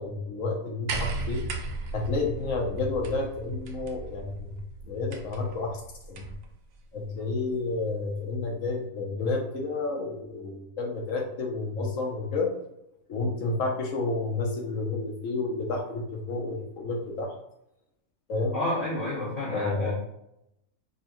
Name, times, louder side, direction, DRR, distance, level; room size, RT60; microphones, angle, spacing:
voice 1, 0.0-1.4 1.9-4.6 4.8-5.8 6.1-6.3 6.9-12.5 13.1-17.3 18.3-18.6 19.5-19.9, left 3 dB, 65° left, 1 dB, 0.9 m, -30 dB
sound 1, 0.9-6.5 7.6-7.7, right 3 dB, 70° right, 0.8 m, -36 dB
voice 2, 18.5-19.9, left 2 dB, 30° left, -8 dB, 0.8 m, -30 dB
5.4 x 2.1 x 2.9 m, 0.83 s
omnidirectional pair, 1.7 m